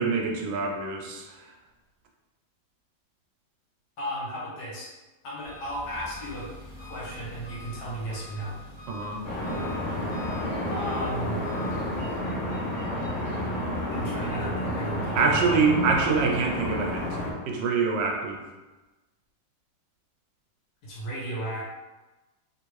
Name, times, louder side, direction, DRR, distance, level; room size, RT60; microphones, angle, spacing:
voice 1, 0.0-1.5 8.9-9.3 15.1-17.2 17.5-18.4, right 4 dB, 80° right, 1 dB, 1.3 m, -25 dB
voice 2, 4.0-4.9 5.2-6.5 6.8-8.6 10.7-11.4 13.9-15.6 20.8-21.6, right 1 dB, 75° left, -6 dB, 1.5 m, -34 dB
Engine, 5.4-12.2, left 2 dB, 25° right, 0.5 m, -44 dB
sound 1, 9.2-17.3, left 1 dB, 55° left, 0.9 m, -30 dB
3.2 x 2.5 x 3.0 m, 1.1 s
omnidirectional pair, 2.0 m